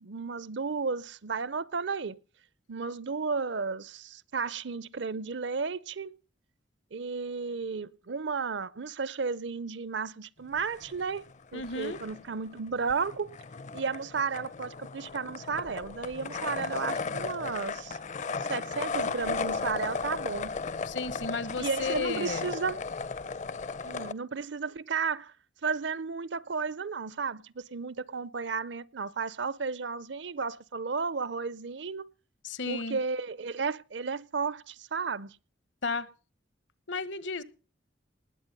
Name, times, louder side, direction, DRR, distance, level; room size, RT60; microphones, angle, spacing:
voice 1, 0.0-2.2 2.7-6.2 6.9-13.4 13.7-18.0 18.5-20.6 21.6-22.8 23.8-25.3 25.6-32.1 32.7-35.4, right 5 dB, 70° right, 0.7 m, -33 dB
sound 1, 10.6-11.3 11.6-24.1, left 4 dB, 40° left, 0.6 m, -36 dB
voice 2, 11.5-12.0 20.9-22.5 32.4-33.0 35.8-36.1 36.9-37.4, left 4 dB, 75° left, 1.2 m, -33 dB
20.0 x 8.2 x 5.4 m
head